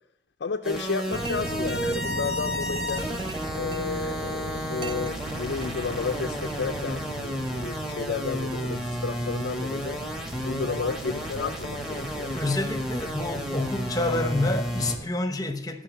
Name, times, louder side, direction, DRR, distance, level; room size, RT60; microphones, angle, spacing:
voice 1, 0.4-3.1 3.5-10.0 10.4-12.3, left 5 dB, 85° left, 0.5 m, -32 dB
sound 1, 0.6-15.0, equal, 5° right, 1.3 m, -32 dB
sound 2, 1.1-15.1, right 3 dB, 25° right, 0.3 m, -37 dB
voice 2, 12.3-15.8, left 2 dB, 20° left, 0.9 m, -28 dB
14.5 x 5.8 x 5.0 m
head